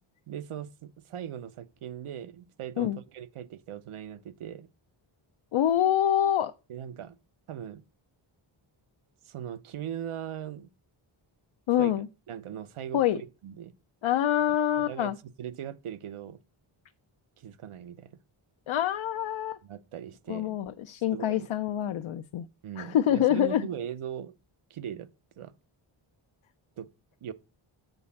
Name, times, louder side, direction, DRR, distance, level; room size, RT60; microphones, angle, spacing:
voice 1, 0.3-4.7 6.7-7.2 7.5-7.8 9.2-10.7 11.8-11.9 12.3-13.7 14.9-15.1 15.4-16.4 17.4-18.2 19.6-20.6 21.1-21.5 22.6-24.3 24.7-25.1 25.4-25.5 26.8-26.9 27.2-27.3, right 9 dB, 80° right, 0.8 m, -39 dB
voice 2, 5.5-6.5 11.7-12.1 12.9-13.2 14.0-15.2 18.7-19.6 20.3-22.5 22.8-23.7, left 11 dB, 70° left, 0.6 m, -26 dB
8.0 x 4.3 x 6.9 m
wide cardioid pair, 140°, 49 cm